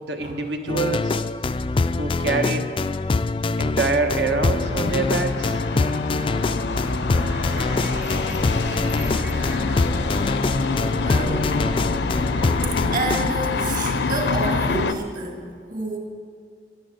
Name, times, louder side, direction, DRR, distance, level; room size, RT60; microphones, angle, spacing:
voice 1, 0.1-1.2 1.9-2.7 3.6-5.6, right 3 dB, 75° right, 5 dB, 1.4 m, -25 dB
sound 1, 0.7-13.5, left 3 dB, 30° left, 0.3 m, -24 dB
sound 2, 4.6-14.9, left 4 dB, 75° left, 0.6 m, -26 dB
sound 3, 7.1-12.7, equal, 10° right, 0.7 m, -34 dB
voice 2, 11.0-11.5 12.9-15.4 15.7-16.0, right 2 dB, 45° right, 2 dB, 2.2 m, -29 dB
11.5 x 11.0 x 8.0 m, 2.4 s
head